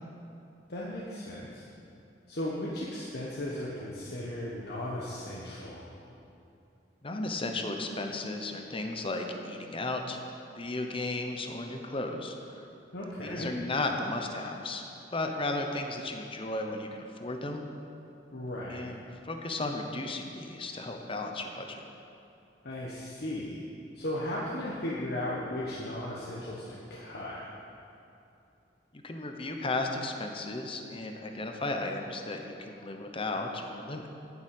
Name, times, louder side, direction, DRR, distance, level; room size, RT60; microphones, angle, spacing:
voice 1, 0.7-1.6 2.3-5.9 12.9-13.5 18.3-18.9 22.6-23.6 23.9-27.4, left 1 dB, 60° left, -5 dB, 1.3 m, -36 dB
voice 2, 7.0-10.2 10.6-12.7 13.2-14.8 15.1-17.6 18.7-19.0 19.2-21.8 29.0-34.2, left 2 dB, 30° left, 3 dB, 0.9 m, -34 dB
9.6 x 7.2 x 8.4 m, 2.7 s
head